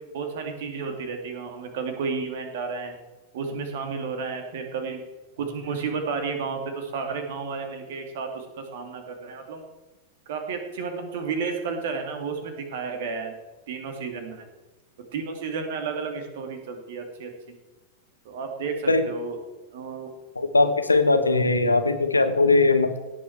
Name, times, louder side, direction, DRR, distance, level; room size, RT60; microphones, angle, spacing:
voice 1, 0.1-2.9 3.3-5.0 5.4-9.6 10.3-13.3 13.7-14.5 15.1-17.6 18.3-19.4 19.7-20.1, right 5 dB, 55° right, 5 dB, 2.3 m, -32 dB
voice 2, 20.4-23.0, left 3 dB, 80° left, 9 dB, 1.1 m, -20 dB
17.0 x 7.4 x 4.6 m, 1.2 s
figure-of-eight pair, 90°, 0 cm